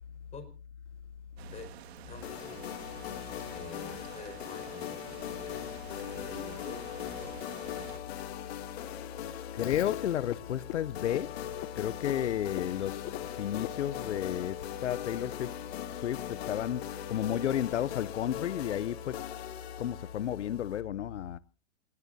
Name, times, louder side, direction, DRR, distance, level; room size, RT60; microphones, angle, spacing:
sound 1, 1.4-8.0, right 11 dB, 65° right, 2.0 m, -49 dB
voice 1, 2.1-2.6 3.5-5.2 6.1-6.8 7.1-7.3, left 4 dB, 20° left, 5.2 m, -47 dB
sound 2, 2.2-20.8, left 10 dB, 60° left, 2.6 m, -40 dB
voice 2, 9.5-11.4 11.8-15.6 15.9-19.2 19.8-21.4, left 10 dB, 80° left, 0.8 m, -32 dB
Frog, 9.6-14.8, left 17 dB, 35° left, 0.8 m, -45 dB
27.5 x 19.0 x 2.7 m
hypercardioid pair, 120°, 34 cm